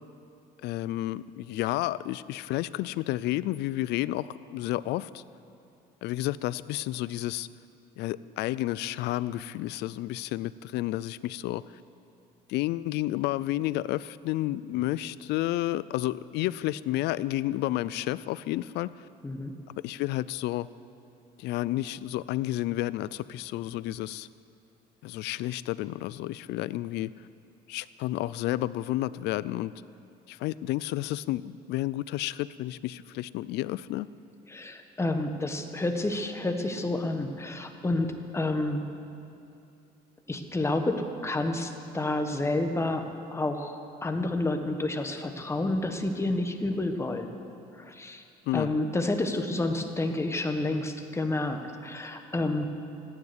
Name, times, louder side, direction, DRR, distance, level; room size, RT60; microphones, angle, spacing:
voice 1, 0.6-5.2 6.0-7.5 8.0-11.6 12.5-19.1 19.8-20.7 21.4-24.3 25.0-27.1 27.7-29.7 30.3-34.1 48.5-48.7, left 15 dB, 85° left, 18 dB, 0.5 m, -31 dB
voice 2, 34.5-38.9 40.3-47.3 47.8-48.2 48.5-52.6, left 2 dB, 15° left, 5 dB, 1.4 m, -29 dB
15.0 x 9.6 x 9.6 m, 2.7 s
cardioid pair, 110°, 17 cm